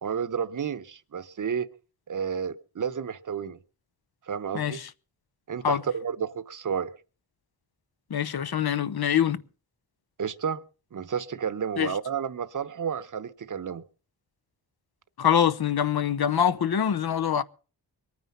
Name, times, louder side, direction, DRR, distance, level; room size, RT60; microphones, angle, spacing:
voice 1, 0.0-1.7 2.1-3.6 4.3-4.8 5.5-6.9 10.2-10.6 10.9-13.8, right 7 dB, 45° right, 1.0 m, -31 dB
voice 2, 8.1-9.4 11.8-11.9 15.2-17.4, left 9 dB, 60° left, 0.9 m, -24 dB
23.0 x 9.6 x 5.6 m
wide cardioid pair, 130°, 43 cm